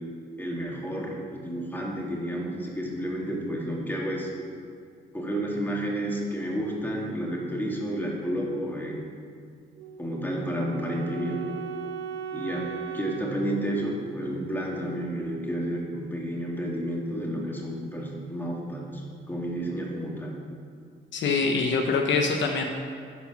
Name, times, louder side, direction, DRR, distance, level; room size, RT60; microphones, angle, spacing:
voice 1, 0.4-4.3 5.1-9.2 10.0-11.5 12.3-20.4, equal, 10° left, -2 dB, 1.9 m, -31 dB
Wind instrument woodwind instrument, 9.8-14.8, right 6 dB, 85° right, 0.6 m, -39 dB
voice 2, 21.1-22.6, left 4 dB, 70° left, 3 dB, 0.9 m, -24 dB
11.5 x 4.5 x 5.8 m, 2.3 s
cardioid pair, 90°, 20 cm